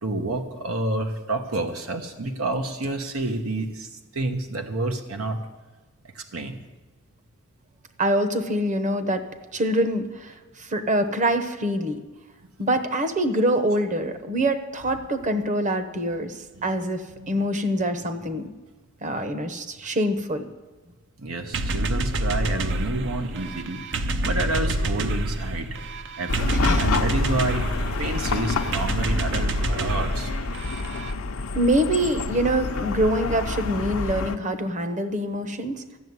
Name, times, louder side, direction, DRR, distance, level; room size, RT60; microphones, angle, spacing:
voice 1, 0.0-5.4 6.1-6.6 16.6-16.7 17.1-17.4 19.8-20.0 21.2-25.9 26.2-27.7 28.0-30.3, right 2 dB, 90° right, 5 dB, 1.1 m, -29 dB
voice 2, 8.0-9.3 9.5-12.0 12.6-18.5 19.0-20.4 26.5-26.9 31.5-35.8, right 1 dB, 35° right, 9 dB, 1.0 m, -25 dB
sound 1, 21.5-31.1, right 1 dB, 60° right, 0.7 m, -27 dB
Chatter / Car passing by / Traffic noise roadway noise, 26.3-34.4, left 3 dB, 75° left, 0.7 m, -28 dB
14.0 x 6.9 x 9.5 m, 1.2 s
head